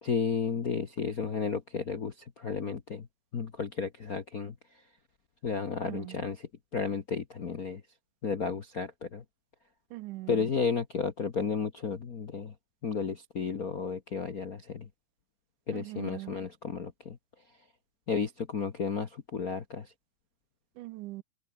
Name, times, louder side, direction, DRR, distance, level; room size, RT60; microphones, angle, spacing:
voice 1, 0.0-3.1 3.3-4.5 5.4-7.8 8.2-9.2 10.3-12.5 12.8-14.9 15.7-17.2 18.1-19.9, left 5 dB, 55° left, 1.0 m, -33 dB
voice 2, 5.8-6.3 9.9-10.5 15.7-16.3 20.8-21.2, right 18 dB, 85° right, 2.1 m, -41 dB
omnidirectional pair, 3.6 m